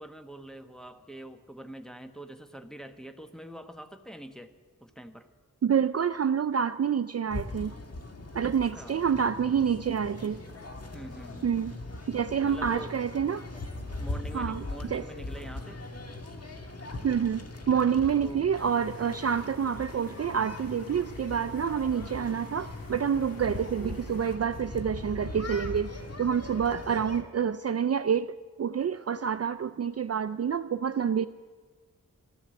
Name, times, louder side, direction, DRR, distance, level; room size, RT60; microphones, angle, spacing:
voice 1, 0.0-4.5 4.8-5.3 8.7-9.0 10.9-11.6 12.4-12.9 14.0-15.8 18.2-18.5 23.4-23.7, right 1 dB, ahead, 7 dB, 1.1 m, -44 dB
voice 2, 5.6-7.7 8.3-10.4 11.4-11.7 12.1-13.5 14.3-15.1 17.0-25.9 26.2-31.3, right 7 dB, 45° right, 12 dB, 0.4 m, -28 dB
sound 1, 7.3-27.2, left 2 dB, 45° left, 1.5 m, -40 dB
sound 2, 9.1-19.3, left 1 dB, 25° left, 4.1 m, -56 dB
sound 3, 18.6-24.4, left 5 dB, 80° left, 1.0 m, -52 dB
13.5 x 13.0 x 7.6 m, 1.5 s
wide cardioid pair, 55°, 34 cm